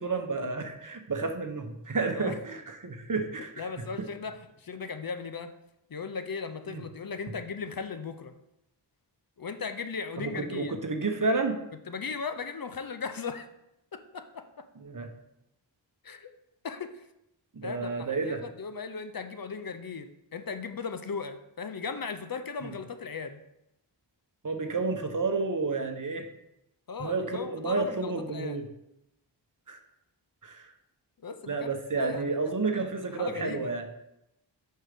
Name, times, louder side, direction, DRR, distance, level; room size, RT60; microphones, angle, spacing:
voice 1, 0.0-3.7 6.7-6.8 10.2-11.5 14.8-15.1 17.5-18.4 22.6-22.7 24.4-26.3 27.0-28.7 29.7-29.8 30.4-30.7 31.5-33.9, right 3 dB, 40° right, 6 dB, 0.9 m, -31 dB
voice 2, 3.6-5.5 5.9-8.4 9.4-10.8 11.9-13.5 13.9-14.7 16.0-16.3 16.6-17.0 17.6-23.4 26.9-28.6 31.2-32.3 32.8-32.9 33.2-33.7, left 5 dB, 50° left, 9 dB, 0.6 m, -37 dB
6.4 x 4.6 x 4.9 m, 0.84 s
cardioid pair, 50°, 46 cm